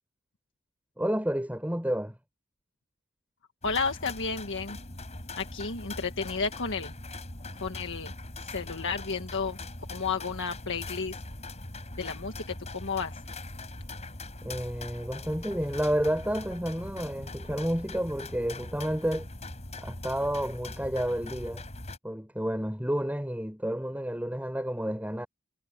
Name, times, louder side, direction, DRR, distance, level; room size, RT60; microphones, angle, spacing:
voice 1, 1.0-2.1 14.4-19.3 19.8-21.6 22.0-25.3, equal, 5° right, 7.1 m, -30 dB
voice 2, 3.6-4.8 5.4-6.9 7.6-8.1 8.4-9.6 9.9-11.2 11.9-13.2, left 5 dB, 60° left, 1.7 m, -32 dB
sound 1, 3.6-22.0, left 2 dB, 30° left, 4.3 m, -41 dB
head